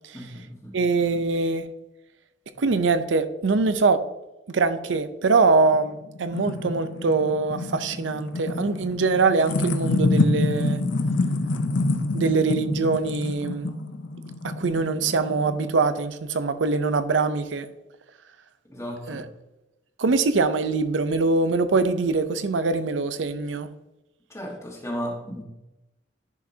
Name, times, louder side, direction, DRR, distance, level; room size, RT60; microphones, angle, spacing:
voice 1, 0.1-0.8 18.7-19.2 24.3-25.4, equal, 15° left, 1.4 m, -34 dB
voice 2, 0.7-1.7 2.6-4.0 4.5-10.8 12.1-13.7 14.4-17.7 19.1-19.2 20.0-23.7, right 4 dB, 90° right, 0.5 m, -23 dB
sound 1, 5.7-15.8, left 2 dB, 80° left, 0.7 m, -27 dB
10.5 x 4.9 x 2.7 m
head